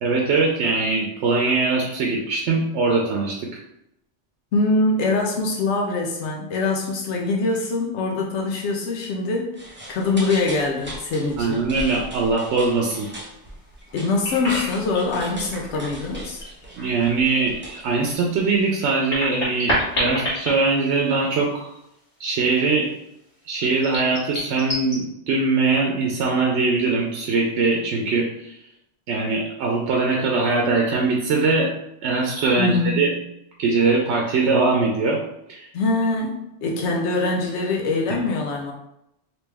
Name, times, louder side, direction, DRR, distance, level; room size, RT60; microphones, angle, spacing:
voice 1, 0.0-3.4 11.4-13.1 16.8-21.7 22.2-22.9 23.5-28.6 29.1-31.7 32.0-33.1 33.6-35.2 35.5-35.7, right 3 dB, 85° right, -1 dB, 0.9 m, -21 dB
voice 2, 4.5-11.6 13.9-16.4 32.6-33.2 35.7-38.7, left 3 dB, 90° left, 0 dB, 0.9 m, -23 dB
sound 1, 9.5-18.6, right 1 dB, 10° right, 0.7 m, -38 dB
sound 2, 13.8-15.1 15.6-16.6 17.0-17.1 18.5-21.5 21.8-21.9 23.6-25.0, equal, 60° left, 1.7 m, -28 dB
3.0 x 2.9 x 3.4 m, 0.82 s
omnidirectional pair, 1.1 m